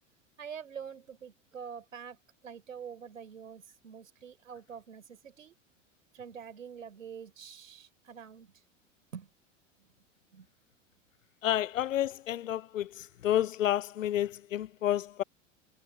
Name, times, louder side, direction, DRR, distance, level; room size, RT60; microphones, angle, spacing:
voice 1, 0.4-2.2 2.4-5.5 6.1-8.5 9.1-9.3 10.3-10.5, right 7 dB, 85° right, 4.3 m, -45 dB
voice 2, 11.4-12.9 13.2-15.2, left 12 dB, 90° left, 0.5 m, -30 dB
hypercardioid pair, 85°, 38 cm